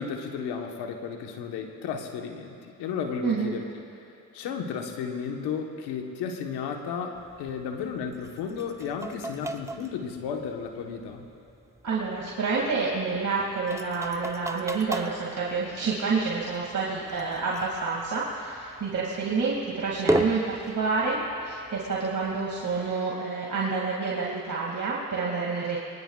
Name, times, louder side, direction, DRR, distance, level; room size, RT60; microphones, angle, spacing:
voice 1, 0.0-3.6 4.3-11.3, left 6 dB, 85° left, 3 dB, 1.4 m, -33 dB
voice 2, 3.2-3.6 11.8-25.8, right 4 dB, 50° right, -4 dB, 2.5 m, -28 dB
sound 1, 7.1-22.9, right 1 dB, 5° right, 0.8 m, -37 dB
22.0 x 19.5 x 2.4 m, 2.7 s
supercardioid pair, 50°, 39 cm